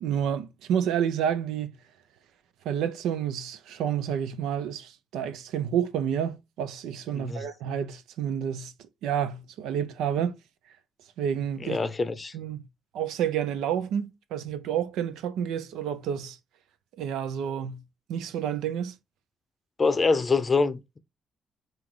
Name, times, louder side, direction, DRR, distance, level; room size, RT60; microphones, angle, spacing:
voice 1, 0.0-1.7 2.6-8.7 9.0-10.4 11.2-11.8 12.3-12.6 12.9-16.4 17.0-17.8 18.1-18.9, right 9 dB, 90° right, 0.5 m, -29 dB
voice 2, 7.1-7.5 11.6-12.3 19.8-21.0, left 4 dB, 30° left, 0.6 m, -25 dB
5.7 x 2.5 x 3.1 m
cardioid pair, 90°, 0 cm